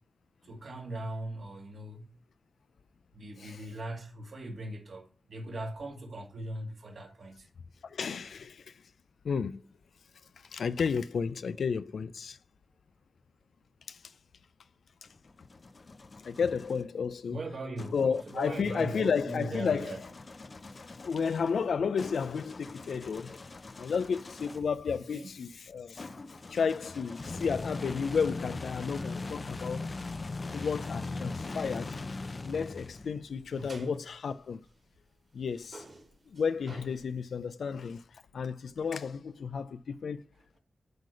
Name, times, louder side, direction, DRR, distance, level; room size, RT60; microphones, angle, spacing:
voice 1, 0.4-2.1 3.1-7.5 17.3-20.0 24.9-25.5 33.5-33.9, right 2 dB, 65° right, 2.2 m, -40 dB
voice 2, 7.8-8.6 9.2-9.6 10.5-12.4 13.9-14.0 16.2-17.4 17.9-19.9 21.0-23.4 23.8-26.1 26.5-29.9 30.4-32.0 32.4-34.6 35.3-35.8 36.3-38.0 38.3-40.2, left 6 dB, 90° left, 0.5 m, -32 dB
sound 1, 15.1-16.9 17.8-24.8 26.0-33.3, left 3 dB, 40° left, 0.7 m, -41 dB
sound 2, 30.9-35.1 35.4-37.5, right 2 dB, 45° right, 2.2 m, -55 dB
7.9 x 4.9 x 5.7 m
wide cardioid pair, 110°, 0 cm